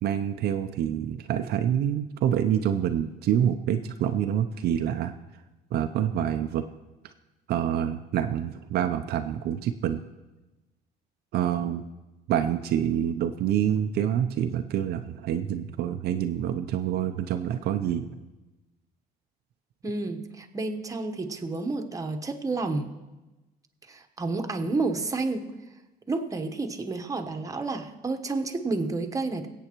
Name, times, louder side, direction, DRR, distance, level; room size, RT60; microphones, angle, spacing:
voice 1, 0.0-5.1 5.7-6.6 7.5-10.0 11.3-11.8 12.3-18.2, right 10 dB, 70° right, 7 dB, 0.6 m, -27 dB
voice 2, 19.8-22.9 23.9-25.5 26.1-29.5, right 3 dB, 20° right, 4 dB, 1.1 m, -30 dB
23.0 x 8.3 x 3.0 m, 1.1 s
cardioid pair, 110°, 17 cm